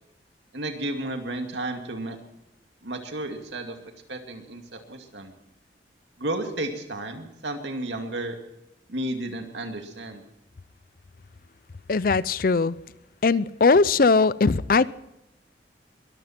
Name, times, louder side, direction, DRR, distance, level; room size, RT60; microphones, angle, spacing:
voice 1, 0.5-2.2 2.8-3.8 4.1-5.3 6.2-8.4 8.9-10.2, right 1 dB, 90° right, 2.4 m, -32 dB
voice 2, 11.9-12.8 13.2-14.9, left 4 dB, 55° left, 0.5 m, -20 dB
22.0 x 13.5 x 4.5 m
head